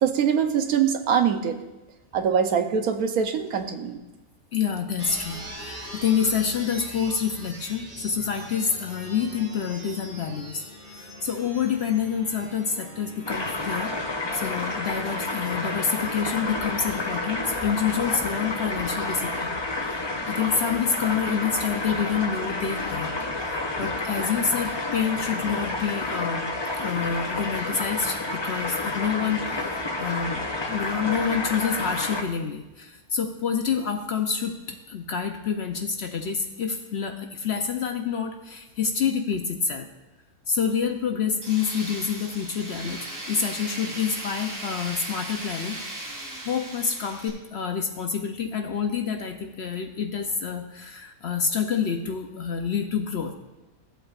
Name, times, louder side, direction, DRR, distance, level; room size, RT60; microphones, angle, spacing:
voice 1, 0.0-1.6 2.1-4.0, right 7 dB, 75° right, 7 dB, 1.2 m, -23 dB
voice 2, 4.5-10.6 10.9-13.9 14.3-19.6 19.9-23.1 23.4-26.5 26.8-30.4 30.7-39.9 40.5-45.8 46.4-53.3, left 6 dB, 55° left, 4 dB, 0.8 m, -28 dB
sound 1, 5.0-14.0, right 1 dB, 30° right, 2.6 m, -42 dB
sound 2, 13.3-32.2, left 2 dB, 30° left, 0.5 m, -30 dB
Tools, 41.4-47.3, right 1 dB, 55° right, 2.6 m, -37 dB
15.5 x 8.1 x 2.4 m, 1.1 s
omnidirectional pair, 1.6 m